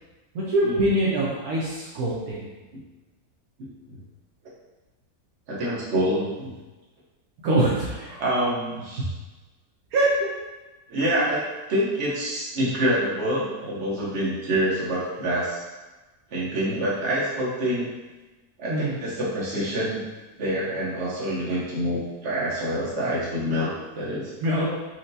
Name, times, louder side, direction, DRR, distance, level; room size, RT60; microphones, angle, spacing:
voice 1, 0.3-2.5 7.4-8.2 9.9-10.1 11.0-11.2 18.7-19.0 24.4-24.7, right 1 dB, 75° right, -6 dB, 1.1 m, -24 dB
voice 2, 3.6-4.0 5.5-6.5 8.2-9.1 10.9-15.6 16.3-17.9 18.6-20.0 20.4-24.3, equal, 55° right, -7 dB, 1.1 m, -26 dB
4.4 x 2.1 x 2.6 m, 1.2 s
omnidirectional pair, 1.6 m